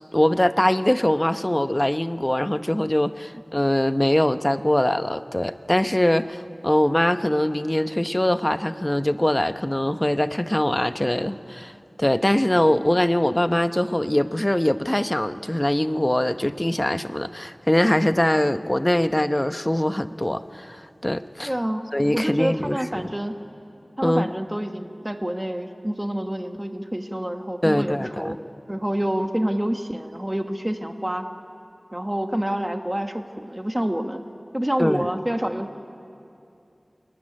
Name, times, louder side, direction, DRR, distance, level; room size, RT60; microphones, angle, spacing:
voice 1, 0.1-11.7 12.0-21.5 21.9-23.1 24.0-24.3 27.6-28.4 34.8-35.0, left 1 dB, 25° left, 10 dB, 0.9 m, -22 dB
voice 2, 21.4-21.8 22.1-23.3 24.0-28.3 28.7-31.3 31.9-34.2 34.5-35.7, right 1 dB, 15° right, 6 dB, 1.3 m, -27 dB
27.0 x 21.0 x 9.9 m, 2.7 s
wide cardioid pair, 50°, 0 cm